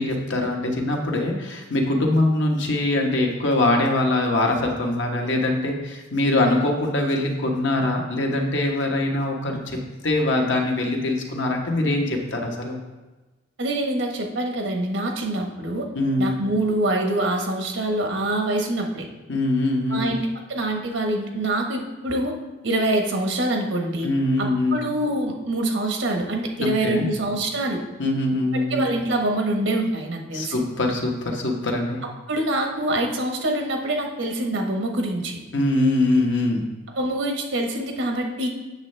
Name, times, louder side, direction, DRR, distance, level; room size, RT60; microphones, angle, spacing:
voice 1, 0.0-9.8 10.0-12.8 15.9-16.3 19.3-20.1 24.0-24.8 26.6-27.1 28.0-28.8 30.3-32.0 35.5-36.6, left 2 dB, 70° left, 1 dB, 1.1 m, -23 dB
voice 2, 13.6-15.9 16.2-19.1 19.9-22.3 22.6-24.1 24.4-27.8 28.5-30.6 32.3-35.4 36.9-38.5, right 1 dB, 80° right, 2 dB, 1.2 m, -25 dB
8.0 x 6.5 x 3.3 m, 1.2 s
head